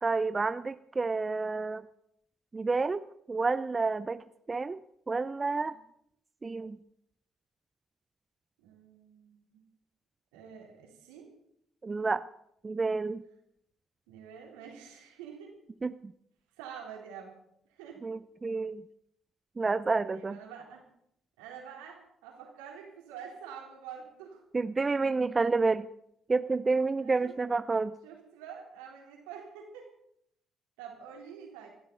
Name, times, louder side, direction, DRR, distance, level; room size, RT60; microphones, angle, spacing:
voice 1, 0.0-1.8 2.5-3.0 3.3-4.8 5.1-5.7 6.4-6.8 11.8-12.2 12.6-13.2 15.8-16.1 18.0-18.8 19.6-20.4 24.5-25.9 26.3-27.9, right 4 dB, 30° right, 13 dB, 0.6 m, -29 dB
voice 2, 8.6-9.6 10.3-11.3 14.1-15.5 16.6-17.4 17.7-18.0 20.0-20.8 21.4-24.4 27.0-27.3 28.0-29.9 30.8-31.7, right 7 dB, 75° right, 1 dB, 3.6 m, -47 dB
27.5 x 12.0 x 4.0 m, 0.72 s
hypercardioid pair, 45°, 0 cm